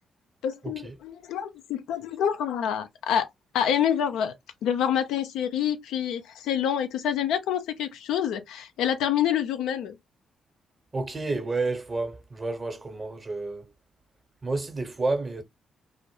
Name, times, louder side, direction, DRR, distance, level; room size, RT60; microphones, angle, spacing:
voice 1, 0.4-3.3 3.5-4.3 4.6-10.0, left 9 dB, 70° left, 0.4 m, -27 dB
voice 2, 10.9-13.7 14.4-15.4, right 3 dB, 35° right, 0.9 m, -30 dB
2.1 x 2.0 x 3.0 m
hypercardioid pair, 40°, 0 cm